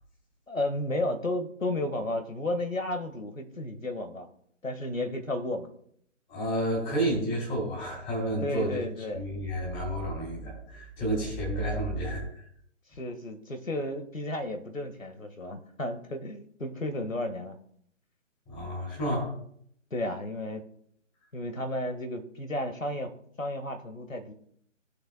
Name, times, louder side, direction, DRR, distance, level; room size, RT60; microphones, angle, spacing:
voice 1, 0.5-4.3 4.6-5.7 8.4-9.2 13.0-17.6 19.9-20.6 21.3-23.1 23.4-24.3, left 1 dB, 85° left, 7 dB, 1.8 m, -33 dB
voice 2, 6.3-8.8 9.1-12.2 18.5-19.3, right 1 dB, 15° left, -3 dB, 2.9 m, -30 dB
19.5 x 6.9 x 2.3 m, 0.67 s
figure-of-eight pair, 145°, 39 cm